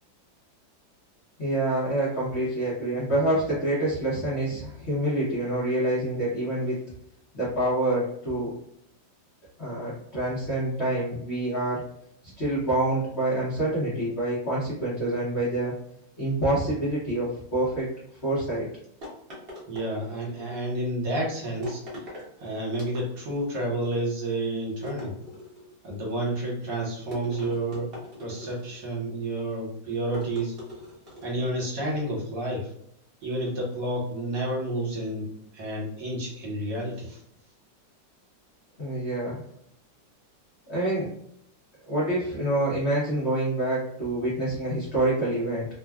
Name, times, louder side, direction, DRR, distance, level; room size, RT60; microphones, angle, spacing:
voice 1, 1.4-6.8 7.3-8.5 9.6-11.8 12.4-15.7 16.2-17.9 18.2-18.7 38.8-39.4 40.7-41.1 41.9-45.7, right 1 dB, 50° left, -8 dB, 0.9 m, -27 dB
sound 1, 19.0-20.4 21.6-22.3 22.7-23.4 24.8-25.7 27.1-28.9 30.1-31.4, equal, 40° right, 0.9 m, -40 dB
voice 2, 19.7-21.8 22.4-25.1 25.8-27.9 28.2-30.5 31.2-32.7 33.2-37.2, right 1 dB, 70° right, -3 dB, 1.6 m, -30 dB
3.4 x 2.2 x 2.3 m, 0.70 s
omnidirectional pair, 2.1 m